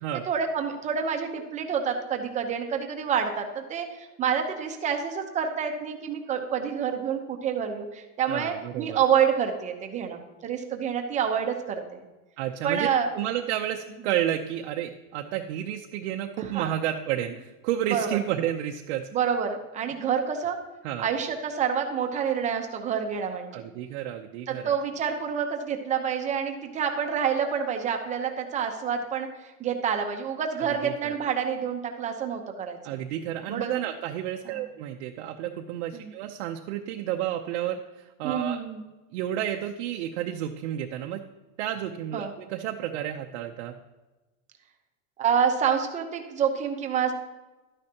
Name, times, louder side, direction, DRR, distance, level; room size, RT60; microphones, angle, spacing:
voice 1, 0.3-12.0 12.6-13.1 16.4-16.7 17.9-18.1 19.1-20.6 21.0-23.6 24.5-33.0 33.5-33.8 34.5-34.6 35.9-36.1 38.2-38.8 42.1-42.3 45.2-47.1, right 7 dB, 20° right, 4 dB, 0.8 m, -28 dB
voice 2, 8.3-9.0 12.4-19.1 20.8-21.1 23.5-24.8 30.6-31.2 32.8-38.6 39.1-41.2 41.6-43.8, right 11 dB, 60° right, 2 dB, 0.8 m, -31 dB
12.5 x 9.7 x 2.9 m, 1.2 s
supercardioid pair, 165°, 38 cm